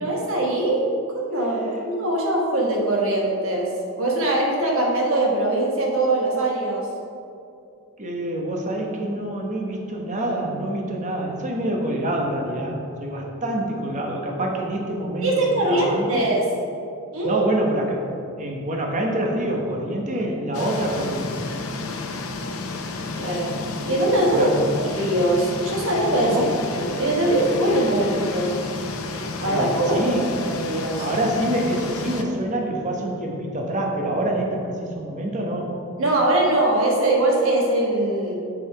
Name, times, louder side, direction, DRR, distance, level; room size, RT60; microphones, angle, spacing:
voice 1, 0.0-3.7 4.0-6.9 15.2-16.5 17.1-17.4 23.2-23.6 23.9-24.5 24.9-26.4 26.7-28.6 29.4-31.1 36.0-38.4, right 1 dB, 60° right, -1 dB, 1.4 m, -22 dB
voice 2, 8.0-15.3 15.6-16.2 17.2-18.0 18.4-21.4 24.3-24.7 26.2-26.6 29.5-29.7 29.9-30.2 30.9-35.7, right 1 dB, 35° right, 0 dB, 1.1 m, -26 dB
sound 1, 20.5-32.2, left 3 dB, 70° left, 0.7 m, -31 dB
7.2 x 6.0 x 4.7 m, 2.6 s
head